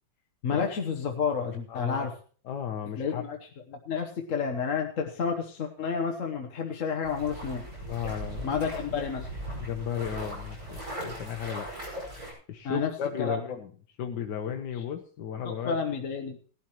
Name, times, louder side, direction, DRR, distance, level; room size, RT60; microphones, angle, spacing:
voice 1, 0.4-2.1 3.0-3.4 3.7-7.7 8.4-9.3 12.6-12.9 13.2-13.4 15.4-16.4, left 6 dB, 50° left, 3 dB, 1.2 m, -30 dB
voice 2, 1.7-2.1 2.4-3.2 7.8-8.5 9.6-11.7 12.5-13.7 14.0-15.8, left 8 dB, 65° left, 4 dB, 1.4 m, -34 dB
sound 1, 7.0-12.3, right 1 dB, 40° right, 6.2 m, -39 dB
18.5 x 11.5 x 3.0 m, 0.42 s
omnidirectional pair, 2.0 m